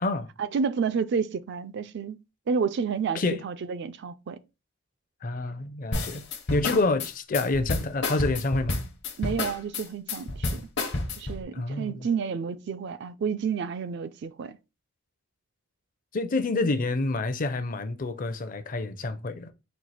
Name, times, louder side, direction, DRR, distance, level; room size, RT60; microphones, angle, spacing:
voice 1, 0.4-2.2 2.5-4.4 9.2-10.7 11.2-14.6, right 6 dB, 55° right, 0.4 m, -30 dB
voice 2, 5.2-6.2 6.5-8.7 11.5-12.1 16.1-19.5, left 2 dB, 40° left, 0.5 m, -28 dB
sound 1, 5.9-11.4, left 2 dB, 60° left, 0.9 m, -30 dB
4.5 x 2.4 x 4.1 m
head